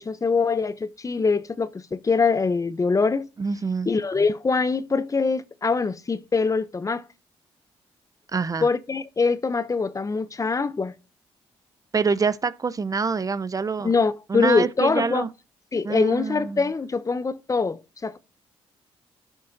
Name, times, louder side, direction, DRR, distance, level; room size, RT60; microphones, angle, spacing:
voice 1, 0.0-3.3 3.9-7.0 8.6-10.9 13.8-15.3 15.7-18.2, left 4 dB, 30° left, 0.7 m, -23 dB
voice 2, 3.4-3.9 8.3-8.7 11.9-13.9 14.3-15.3 15.8-16.7, right 5 dB, 35° right, 0.5 m, -26 dB
15.0 x 5.3 x 2.6 m
supercardioid pair, 60°, 10 cm